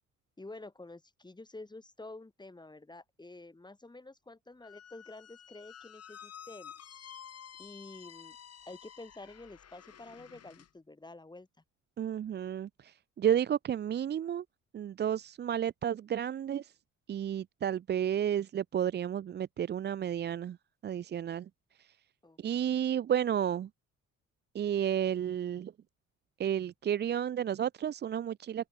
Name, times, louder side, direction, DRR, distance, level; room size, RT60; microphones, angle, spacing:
voice 1, 0.4-7.1 7.6-8.4 8.7-11.5 22.2-22.8, left 2 dB, 15° left, 2.5 m, -49 dB
Squeak, 4.6-10.7, left 9 dB, 55° left, 2.9 m, -51 dB
voice 2, 12.0-14.4 14.7-16.7 17.1-20.6 20.8-21.5 21.8-22.0 22.4-23.7 24.5-25.7 26.4-28.7, right 9 dB, 35° right, 0.4 m, -32 dB
open air
cardioid pair, 90°, 30 cm